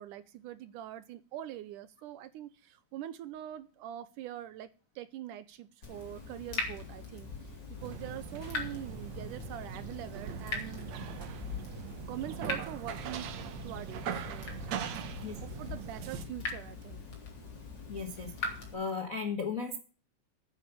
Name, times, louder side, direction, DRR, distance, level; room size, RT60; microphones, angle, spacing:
voice 1, 0.0-4.7 5.0-10.9 12.0-13.3 13.6-14.9 15.4-17.1, right 12 dB, 75° right, 2.1 m, -43 dB
Water tap faucet / Drip, 5.8-18.7, left 3 dB, 30° left, 3.9 m, -42 dB
sound 1, 7.8-16.3, right 6 dB, 60° right, 2.1 m, -41 dB
voice 2, 17.9-19.8, left 5 dB, 50° left, 0.9 m, -36 dB
9.5 x 9.2 x 6.9 m
omnidirectional pair, 4.0 m